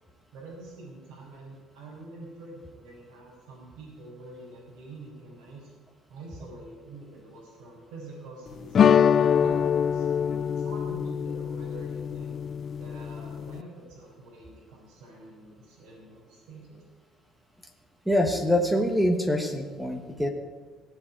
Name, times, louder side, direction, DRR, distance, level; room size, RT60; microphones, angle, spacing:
voice 1, 0.3-5.7 6.1-10.1 10.5-12.3 12.8-16.8, right 2 dB, 75° right, -7 dB, 5.1 m, -46 dB
sound 1, 8.7-13.6, left 8 dB, 30° left, 0.3 m, -24 dB
voice 2, 18.1-20.3, equal, 5° right, 5 dB, 1.2 m, -25 dB
18.0 x 7.9 x 8.7 m, 1.3 s
cardioid pair, 175°, 0 cm